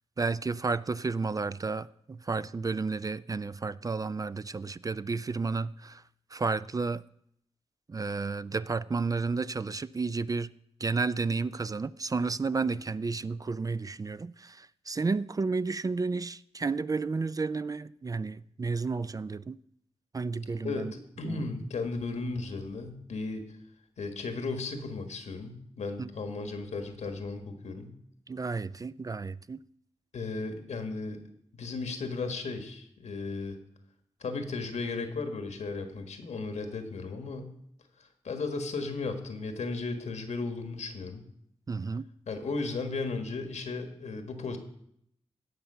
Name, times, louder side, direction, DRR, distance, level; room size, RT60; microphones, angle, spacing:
voice 1, 0.2-6.0 6.3-7.0 7.9-10.5 10.8-19.6 20.1-20.9 21.3-21.4 26.0-26.1 28.3-29.6 41.7-42.1, right 4 dB, 30° right, 0.3 m, -32 dB
voice 2, 21.2-23.5 24.0-27.9 30.1-31.2 31.6-33.6 34.2-37.5 38.0-41.2 42.3-44.6, left 3 dB, 85° left, 1.5 m, -35 dB
16.5 x 5.8 x 5.5 m
cardioid pair, 70°, 11 cm